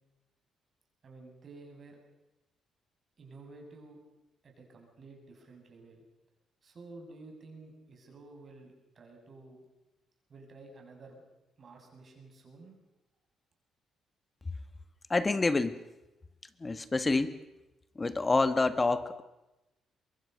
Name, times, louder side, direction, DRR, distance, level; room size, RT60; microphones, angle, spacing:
voice 1, 1.0-2.0 3.2-4.0 4.4-6.0 6.6-9.6 10.3-11.2 11.6-12.8, right 3 dB, 45° right, 2 dB, 7.0 m, -51 dB
voice 2, 15.1-15.8 16.6-17.4 17.9-19.2, left 3 dB, 25° left, 12 dB, 1.6 m, -27 dB
24.0 x 22.5 x 6.7 m, 0.98 s
cardioid pair, 90°, 0 cm